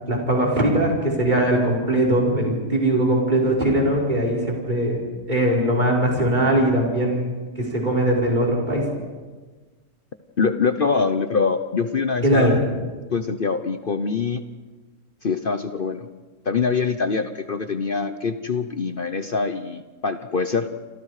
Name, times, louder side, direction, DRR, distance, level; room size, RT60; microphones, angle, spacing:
voice 1, 0.1-5.0 5.3-8.8 12.2-12.6, right 1 dB, 30° right, -2 dB, 5.0 m, -20 dB
voice 2, 10.4-12.6 13.1-14.4 15.2-16.1 16.5-20.7, left 5 dB, 45° left, 9 dB, 0.9 m, -24 dB
28.5 x 26.0 x 4.9 m, 1.3 s
omnidirectional pair, 1.6 m